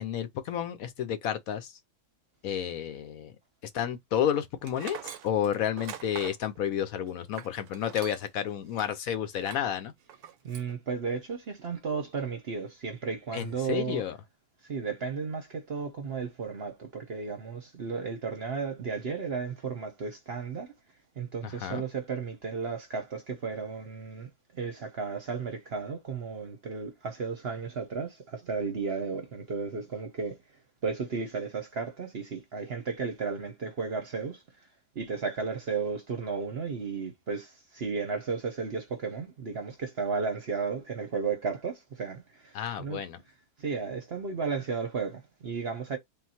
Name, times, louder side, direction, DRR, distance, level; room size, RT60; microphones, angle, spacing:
voice 1, 0.0-1.8 2.4-3.3 3.7-9.9 13.3-14.2 21.4-21.8 42.5-43.2, left 9 dB, 70° left, 1.1 m, -31 dB
Tools, 4.6-8.4 8.7-8.9 9.4-9.7 10.1-10.7, right 10 dB, 80° right, 1.1 m, -43 dB
voice 2, 10.4-14.0 14.6-20.7 21.2-30.4 30.8-34.4 34.9-43.0 43.6-46.0, right 5 dB, 50° right, 0.9 m, -34 dB
3.8 x 2.5 x 4.2 m
omnidirectional pair, 1.6 m